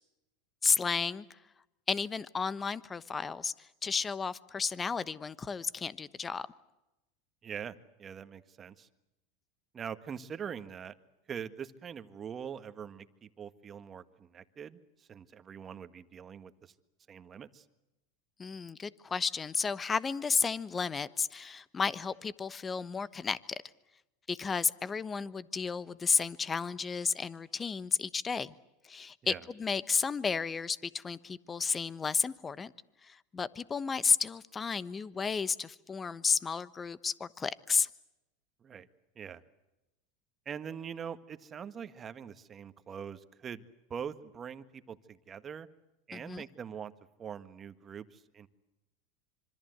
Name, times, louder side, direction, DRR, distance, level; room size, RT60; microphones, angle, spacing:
voice 1, 0.6-1.4 1.9-6.5 18.4-23.6 24.3-28.5 28.8-29.3 29.6-32.7 33.0-37.9 46.1-46.4, left 5 dB, 20° left, 17 dB, 1.1 m, -32 dB
voice 2, 7.4-8.9 9.7-10.9 11.3-16.7 17.1-17.6 29.2-29.4 38.6-38.9 39.1-39.4 40.4-45.7 46.1-46.9 47.2-48.5, right 7 dB, 30° right, 11 dB, 1.7 m, -43 dB
26.0 x 24.5 x 8.1 m, 0.96 s
hypercardioid pair, 105°, 0 cm